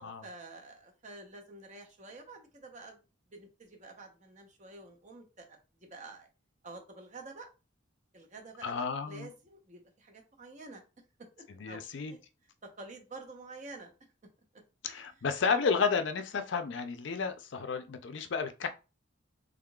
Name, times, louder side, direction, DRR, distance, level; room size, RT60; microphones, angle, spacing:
voice 1, 0.0-3.0 3.3-6.3 6.6-7.5 8.1-10.8 11.4-11.8 12.1-12.2 12.6-13.9 14.5-14.6, right 3 dB, 35° right, 0.8 m, -49 dB
voice 2, 8.6-9.3 11.6-12.2 14.8-18.7, left 5 dB, 60° left, 0.4 m, -32 dB
3.7 x 3.5 x 2.3 m
head